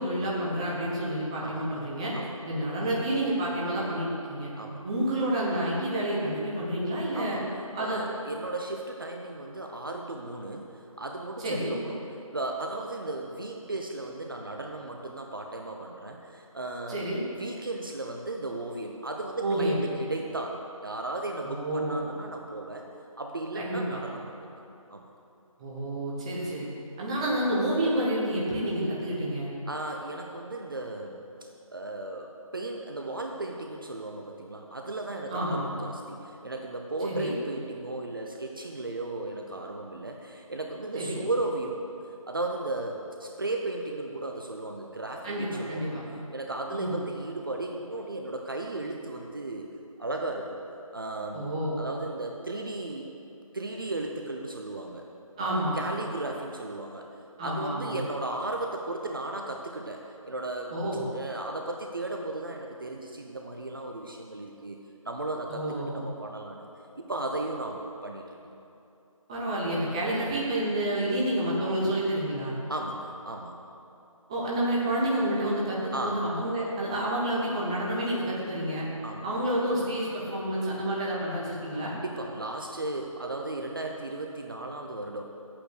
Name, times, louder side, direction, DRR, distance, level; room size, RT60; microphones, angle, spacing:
voice 1, 0.0-2.1 2.4-4.5 4.8-7.4 7.7-8.0 11.4-11.7 16.9-17.2 19.4-19.8 21.5-22.1 23.5-24.0 25.6-26.7 27.0-29.5 35.3-35.7 37.0-37.3 40.9-41.2 45.2-46.0 46.7-47.0 51.3-51.8 55.4-55.8 57.4-58.0 60.7-61.0 65.5-66.0 69.3-72.5 74.3-78.8 79.2-81.9, right 1 dB, 10° right, -6 dB, 1.1 m, -29 dB
voice 2, 1.4-1.8 2.1-2.3 4.6-4.8 7.1-7.5 7.8-12.0 12.3-17.0 17.4-22.9 23.2-24.5 24.9-25.1 29.7-31.2 31.7-41.8 42.3-46.0 46.3-49.7 50.0-50.6 50.9-51.5 51.8-53.1 53.5-55.1 55.4-57.1 57.4-60.7 61.1-66.7 67.0-68.4 72.7-73.6 75.9-76.3 79.0-79.5 81.8-85.2, right 2 dB, 40° right, 2 dB, 0.8 m, -35 dB
12.0 x 8.7 x 6.6 m, 2.7 s
figure-of-eight pair, 165°, 18 cm